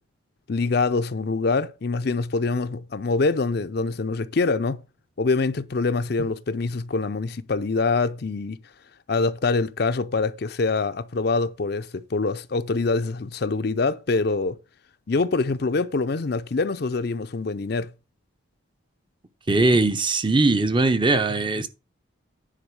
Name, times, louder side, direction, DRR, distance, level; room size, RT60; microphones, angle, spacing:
voice 1, 0.5-4.8 5.2-8.6 9.1-14.6 15.1-17.9, left 3 dB, 50° left, 0.5 m, -25 dB
voice 2, 19.5-21.7, right 2 dB, 25° right, 0.7 m, -20 dB
10.0 x 4.1 x 6.2 m
head